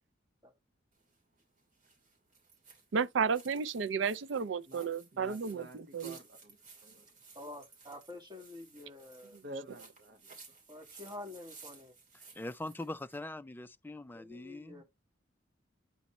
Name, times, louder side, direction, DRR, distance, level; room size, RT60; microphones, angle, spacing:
sound 1, 1.0-13.2, right 4 dB, 45° right, 2.6 m, -57 dB
voice 1, 2.9-6.2, right 6 dB, 80° right, 0.5 m, -32 dB
voice 2, 4.7-6.6 6.8-7.1 9.4-10.4, right 1 dB, 60° right, 1.0 m, -49 dB
voice 3, 7.3-9.4 10.7-11.9 14.1-14.8, left 2 dB, 25° right, 1.9 m, -48 dB
voice 4, 12.3-14.8, left 1 dB, 10° left, 0.3 m, -42 dB
8.2 x 4.1 x 3.1 m
head